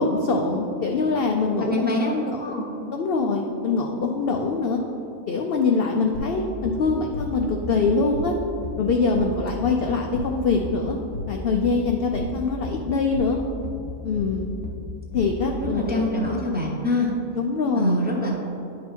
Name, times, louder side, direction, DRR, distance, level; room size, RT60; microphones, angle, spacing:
voice 1, 0.0-2.5 2.9-4.8 5.3-8.3 8.8-11.0 11.3-13.4 14.0-14.5 15.1-16.3 17.3-17.9, left 4 dB, 65° left, 2 dB, 0.6 m, -24 dB
voice 2, 1.5-2.7 15.5-17.1 17.7-18.3, left 1 dB, 10° right, -3 dB, 0.7 m, -25 dB
sound 1, 6.1-15.9, left 3 dB, 80° left, 1.3 m, -33 dB
10.0 x 3.9 x 4.4 m, 2.8 s
omnidirectional pair, 1.5 m